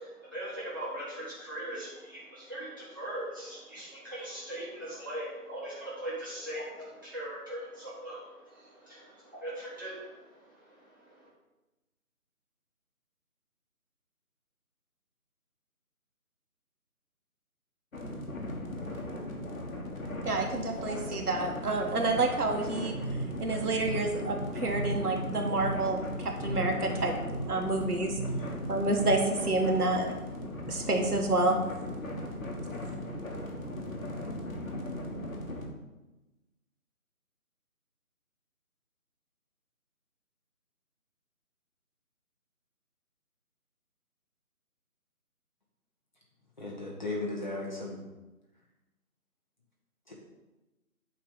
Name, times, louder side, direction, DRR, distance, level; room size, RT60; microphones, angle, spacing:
voice 1, 0.0-11.3, right 1 dB, 15° right, -11 dB, 1.4 m, -40 dB
sound 1, 17.9-35.7, left 1 dB, 60° left, 1.5 m, -38 dB
voice 2, 20.2-22.9 23.4-27.1 27.4-28.1 28.7-30.1 30.7-31.6, right 2 dB, 85° right, 2 dB, 1.5 m, -28 dB
sound 2, 22.6-29.5, right 2 dB, 30° right, 1.5 m, -39 dB
voice 3, 46.6-48.0 50.1-50.2, left 2 dB, 30° left, -3 dB, 1.2 m, -36 dB
8.3 x 3.3 x 5.5 m, 1.1 s
figure-of-eight pair, 175°, 44 cm